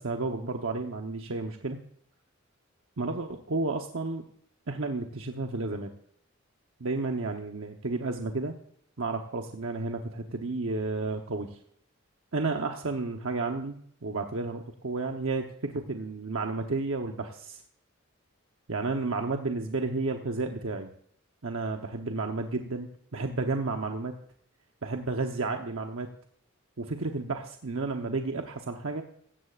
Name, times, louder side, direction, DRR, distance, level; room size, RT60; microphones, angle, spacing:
voice 1, 0.0-1.8 3.0-4.2 4.7-5.9 6.8-8.5 9.0-11.6 12.3-17.6 18.7-20.9 21.4-24.1 24.8-26.1 26.8-29.0, right 3 dB, 80° right, 4 dB, 1.0 m, -32 dB
16.5 x 14.5 x 2.5 m, 0.66 s
head